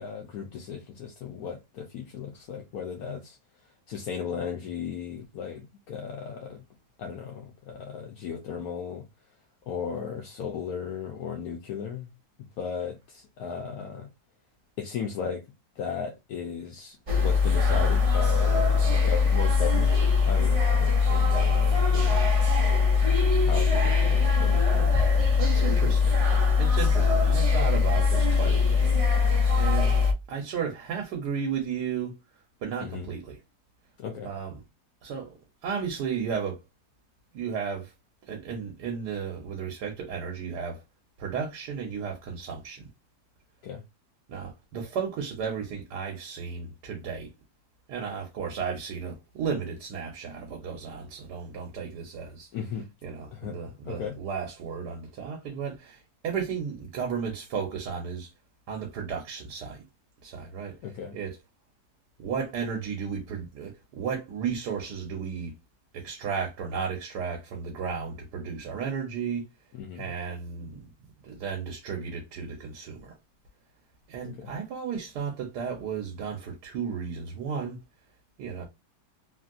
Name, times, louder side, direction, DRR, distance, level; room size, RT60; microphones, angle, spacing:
voice 1, 0.0-3.4 3.9-6.6 7.0-9.1 9.7-12.1 12.6-14.1 14.8-15.4 15.8-22.3 23.4-24.6 32.8-33.1 34.0-34.3 43.6-43.8 52.5-52.8 53.3-54.2 60.8-61.2 69.8-70.1 74.2-74.5, left 6 dB, 70° left, 1.1 m, -36 dB
sound 1, 17.1-30.1, left 5 dB, 50° right, 0.4 m, -22 dB
voice 2, 25.4-26.2 26.6-28.8 29.3-32.1 32.6-33.4 34.2-34.6 35.0-35.3 35.6-36.6 37.3-37.9 38.3-40.8 41.2-42.9 44.3-47.3 47.9-52.5 53.0-58.3 58.7-59.8 60.2-60.8 61.1-61.4 62.2-65.5 65.9-69.5 69.9-70.9 71.2-73.1 74.1-77.8 78.4-78.7, right 6 dB, 90° right, 1.4 m, -34 dB
3.2 x 2.6 x 2.4 m
omnidirectional pair, 1.7 m